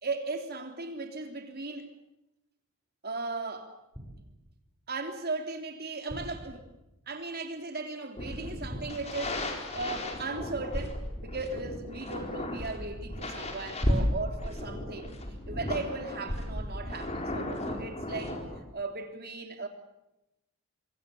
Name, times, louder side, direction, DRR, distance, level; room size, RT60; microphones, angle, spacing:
voice 1, 0.0-1.9 3.0-3.7 4.9-6.7 7.1-15.2 15.5-18.4 18.7-19.7, right 3 dB, 45° right, 3.3 m, -37 dB
sound 1, 3.9-4.7 6.1-7.1 8.7-9.8 10.1-10.3, equal, 15° right, 7.3 m, -46 dB
sound 2, 8.2-18.6, left 1 dB, 30° left, 4.3 m, -34 dB
25.5 x 25.0 x 7.1 m
head